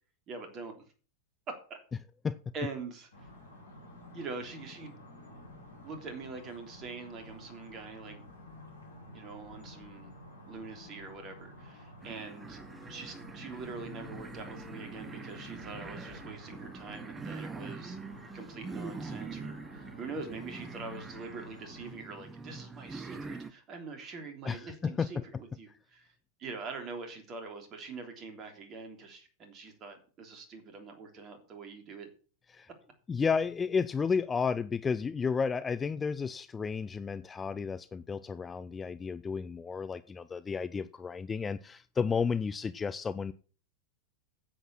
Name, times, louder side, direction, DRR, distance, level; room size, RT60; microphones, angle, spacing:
voice 1, 0.3-0.8 1.5-1.8 2.5-3.3 4.1-5.0 5.8-8.2 9.1-10.1 10.5-12.6 12.9-18.0 18.3-32.1, right 4 dB, 30° right, 3.3 m, -44 dB
sound 1, 3.1-21.9, left 1 dB, 75° left, 3.9 m, -51 dB
sound 2, 12.0-23.5, right 4 dB, 15° right, 0.9 m, -44 dB
voice 2, 24.4-25.1 32.5-32.7 33.1-43.3, left 5 dB, 15° left, 0.5 m, -32 dB
9.9 x 8.0 x 6.1 m
figure-of-eight pair, 90°, 0 cm